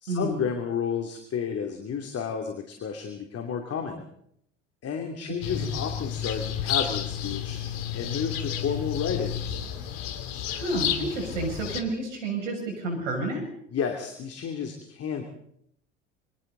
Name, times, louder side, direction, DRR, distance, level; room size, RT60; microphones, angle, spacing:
voice 1, 0.0-4.1 4.8-7.6 7.9-9.5 13.7-15.2, left 7 dB, 40° left, 4 dB, 2.9 m, -31 dB
voice 2, 5.3-5.7 10.5-13.4, right 2 dB, 75° right, 1 dB, 6.7 m, -30 dB
sound 1, 5.4-11.8, left 9 dB, 60° left, 2.8 m, -31 dB
27.0 x 24.5 x 4.0 m, 0.72 s
figure-of-eight pair, 65°, 38 cm